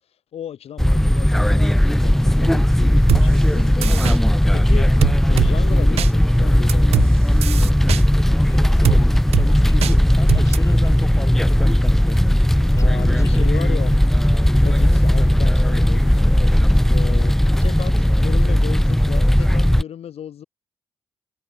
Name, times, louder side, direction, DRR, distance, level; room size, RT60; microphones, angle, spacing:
voice 1, 0.3-4.0 4.5-4.9 5.3-7.1 12.7-14.0 14.6-16.5 16.9-20.5, left 9 dB, 70° left, 4.5 m, -34 dB
sound 1, 0.8-19.8, equal, 5° left, 0.5 m, -16 dB
sound 2, 3.1-3.2 3.8-4.2 5.0-5.5 6.0-6.1 6.7-7.1 7.4-8.0 8.8-9.0 9.3-9.5 9.8-9.9 10.3-10.6, right 12 dB, 75° right, 1.4 m, -20 dB
voice 2, 8.5-13.6, left 3 dB, 30° left, 7.7 m, -35 dB
supercardioid pair, 45°, 11 cm